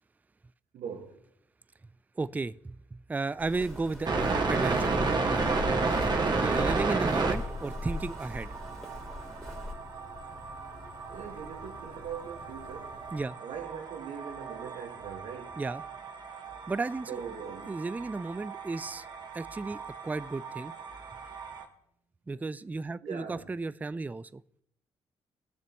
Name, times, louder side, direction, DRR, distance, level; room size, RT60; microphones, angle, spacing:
voice 1, 0.7-1.2 11.1-13.0 13.4-15.6 17.1-17.8 23.0-23.5, right 7 dB, 75° right, 1.5 m, -42 dB
voice 2, 2.2-4.1 4.5-5.1 6.3-8.5 13.1-13.4 15.6-15.8 16.7-17.2 17.7-19.0 19.3-20.7 22.3-24.4, right 3 dB, 15° right, 0.3 m, -34 dB
Walk footsteps, 3.4-9.7, left 2 dB, ahead, 3.4 m, -40 dB
sound 1, 3.8-13.2, left 3 dB, 55° left, 2.3 m, -51 dB
sound 2, 4.0-21.6, right 3 dB, 40° right, 1.6 m, -33 dB
19.0 x 6.8 x 3.0 m
cardioid pair, 75°, 11 cm